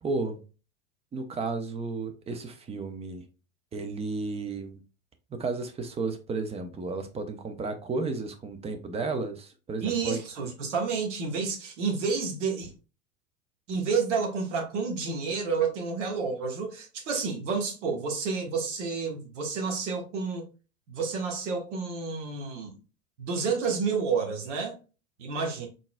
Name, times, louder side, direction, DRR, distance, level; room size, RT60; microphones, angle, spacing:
voice 1, 0.0-0.4 1.1-3.2 3.7-4.8 5.3-10.2, right 3 dB, 15° right, 0.5 m, -33 dB
voice 2, 9.8-12.7 13.7-20.4 20.9-22.8 23.2-24.8 25.2-25.7, right 5 dB, 65° right, 1.4 m, -30 dB
3.9 x 3.6 x 2.3 m
figure-of-eight pair, 85°, 39 cm